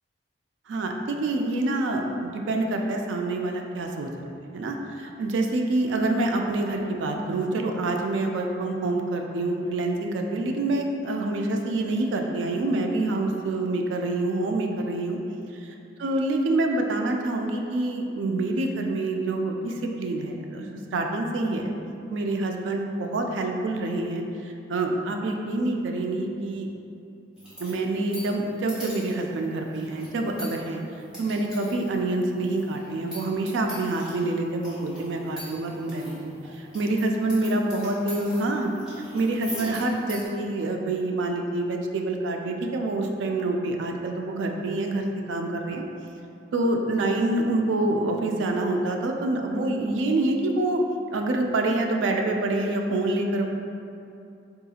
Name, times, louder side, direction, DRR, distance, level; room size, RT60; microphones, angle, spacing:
voice 1, 0.7-4.1 4.5-15.2 16.0-21.8 22.1-26.7 27.6-30.8 31.2-38.7 39.1-45.8 46.5-50.8 51.1-53.5, right 2 dB, 80° right, 3 dB, 0.3 m, -26 dB
sound 1, 27.4-40.3, equal, 5° right, 0.8 m, -43 dB
3.7 x 2.3 x 2.7 m, 2.6 s
head